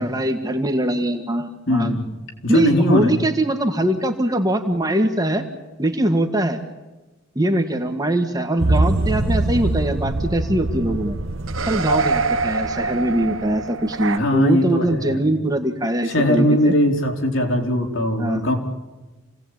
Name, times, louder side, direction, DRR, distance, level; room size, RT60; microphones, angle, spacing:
voice 1, 0.0-1.9 2.5-5.4 5.8-6.6 7.4-11.2 11.7-16.7 18.2-18.4, right 1 dB, 20° right, 5 dB, 1.8 m, -22 dB
voice 2, 1.7-2.0 2.4-3.1 14.1-15.2 16.0-18.5, equal, 65° left, 3 dB, 3.9 m, -19 dB
sound 1, 8.6-14.2, right 2 dB, 75° right, 1.1 m, -23 dB
28.5 x 18.0 x 9.0 m, 1.1 s
head